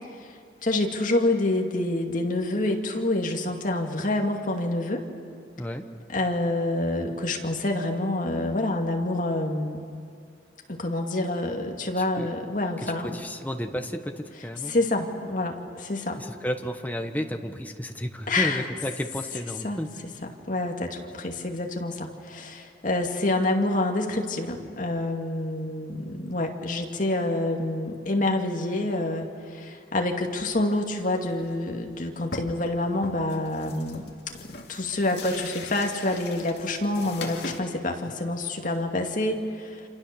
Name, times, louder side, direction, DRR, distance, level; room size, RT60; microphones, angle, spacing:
voice 1, 0.6-5.1 6.1-9.9 10.7-13.2 14.7-16.2 18.3-18.6 19.6-19.8 20.5-34.1 34.4-39.8, left 2 dB, 45° left, 2 dB, 2.4 m, -27 dB
voice 2, 12.0-12.3 12.8-14.7 16.2-19.9, equal, 10° left, 5 dB, 1.2 m, -32 dB
sound 1, 31.3-31.6 32.0-32.1 32.3-32.7 33.0-37.6, left 3 dB, 65° left, 2.4 m, -40 dB
28.0 x 27.0 x 6.9 m, 2.3 s
head